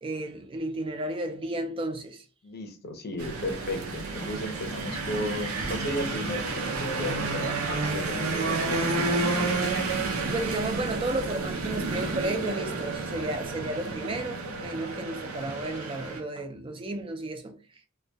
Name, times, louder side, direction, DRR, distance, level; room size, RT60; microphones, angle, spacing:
voice 1, 0.0-2.2 10.3-17.6, right 2 dB, 25° right, 0.4 m, -33 dB
voice 2, 2.4-8.8 14.0-14.2, left 1 dB, 50° left, 0.6 m, -34 dB
sound 1, 3.2-16.2, right 3 dB, 75° right, 0.5 m, -30 dB
2.2 x 2.2 x 2.5 m
head